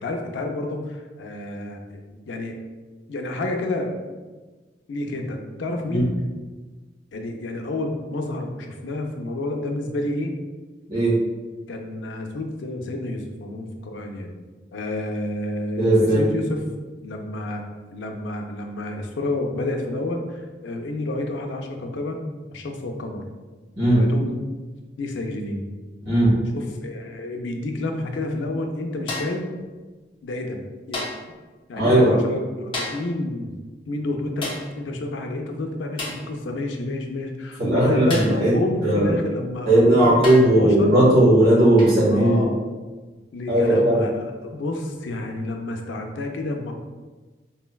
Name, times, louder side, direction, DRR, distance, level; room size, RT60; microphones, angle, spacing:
voice 1, 0.0-1.8 2.1-2.6 3.1-4.2 4.9-6.2 7.1-10.3 11.7-14.3 14.7-16.6 17.0-17.7 17.9-22.3 22.5-23.2 24.0-24.4 25.0-25.6 26.5-29.5 30.2-30.6 30.9-31.1 31.7-33.5 33.9-40.9 42.1-42.7 43.3-46.7, left 2 dB, 85° left, 3 dB, 0.4 m, -29 dB
voice 2, 15.8-16.2 23.8-24.0 26.0-26.3 31.8-32.2 37.6-38.5 38.8-39.1 39.7-42.5 43.5-44.0, right 1 dB, 55° right, -7 dB, 1.3 m, -17 dB
sound 1, 29.1-29.5 30.9-31.3 32.7-33.1 34.4-34.7 36.0-36.3 38.1-38.5 39.5-39.6 40.2-40.6 41.8-42.0 43.7-43.9, left 2 dB, 30° left, 0.5 m, -32 dB
3.8 x 2.1 x 2.2 m, 1.3 s
head